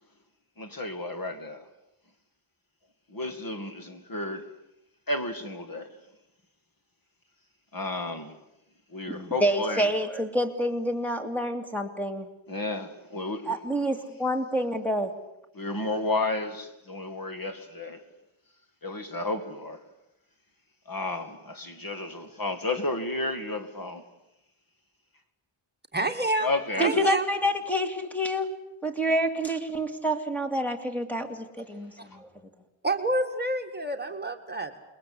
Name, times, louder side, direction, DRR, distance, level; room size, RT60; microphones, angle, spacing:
voice 1, 0.6-1.7 3.1-4.5 5.1-5.9 7.7-8.4 8.9-9.9 12.5-13.6 15.5-18.0 18.8-19.8 20.9-24.0 26.4-27.0 32.1-32.2, left 2 dB, 40° left, 2.1 m, -32 dB
voice 2, 9.1-12.3 13.5-15.2 26.8-28.5 28.8-32.3, equal, 5° left, 2.6 m, -28 dB
voice 3, 25.9-26.5 26.8-27.3 32.8-34.8, right 2 dB, 20° right, 1.9 m, -28 dB
28.0 x 22.0 x 8.5 m
wide cardioid pair, 155°, 50 cm